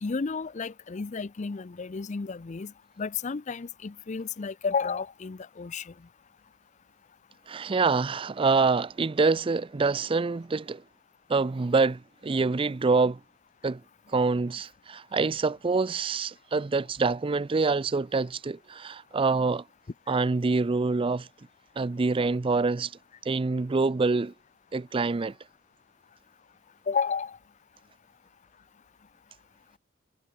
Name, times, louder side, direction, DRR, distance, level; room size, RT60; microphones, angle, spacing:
voice 1, 0.0-2.7 3.0-5.9 26.9-27.4, left 5 dB, 35° left, 0.5 m, -32 dB
voice 2, 7.5-10.8 11.3-13.2 13.6-13.8 14.1-19.6 20.1-21.3 21.8-22.9 23.2-24.3 24.7-25.3, right 4 dB, 25° right, 0.4 m, -26 dB
head